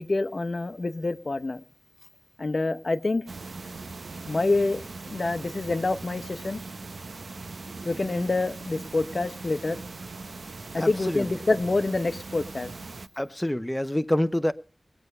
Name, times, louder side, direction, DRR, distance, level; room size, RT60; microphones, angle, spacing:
voice 1, 0.0-1.6 2.4-3.2 4.3-6.6 7.8-9.8 10.7-12.7, left 2 dB, 60° left, 0.9 m, -27 dB
sound 1, 3.3-13.1, right 3 dB, 85° right, 0.8 m, -40 dB
voice 2, 10.8-11.3 13.2-14.5, left 1 dB, 10° left, 0.5 m, -26 dB
20.5 x 8.1 x 5.4 m
wide cardioid pair, 75°, 0 cm